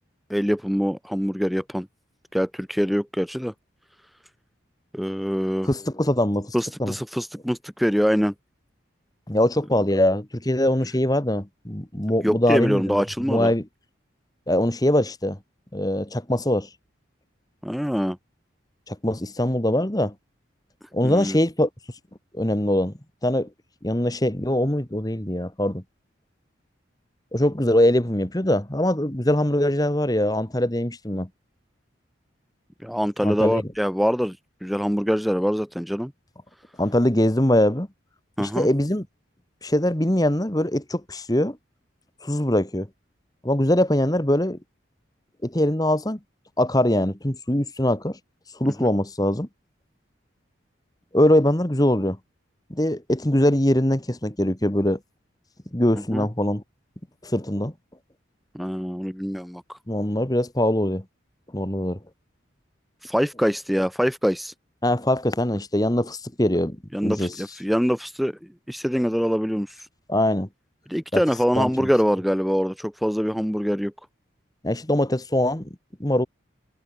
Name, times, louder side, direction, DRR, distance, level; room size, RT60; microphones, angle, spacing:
voice 1, 0.3-1.9 2.3-3.5 4.9-5.7 6.5-8.3 12.2-13.5 17.6-18.2 21.0-21.4 32.8-34.4 34.6-36.1 38.4-38.7 56.1-56.3 58.5-59.8 63.0-64.5 66.9-68.3 68.7-69.9 70.9-73.9, equal, ahead, 1.3 m, -24 dB
voice 2, 5.6-6.9 9.3-13.0 13.3-13.6 14.5-15.4 15.7-16.7 18.9-20.1 20.9-21.7 22.3-22.9 23.2-23.5 23.8-25.8 27.3-31.3 33.2-33.6 36.8-37.9 38.4-39.0 39.6-41.6 42.2-42.9 43.4-44.6 45.4-46.2 46.6-48.2 48.6-49.5 51.1-52.2 52.7-55.0 55.7-56.6 57.2-57.7 59.9-61.0 61.5-62.0 64.8-66.8 67.0-67.3 70.1-70.5 71.1-71.2 71.5-71.9 74.6-75.7 76.0-76.3, left 1 dB, 20° left, 1.6 m, -22 dB
head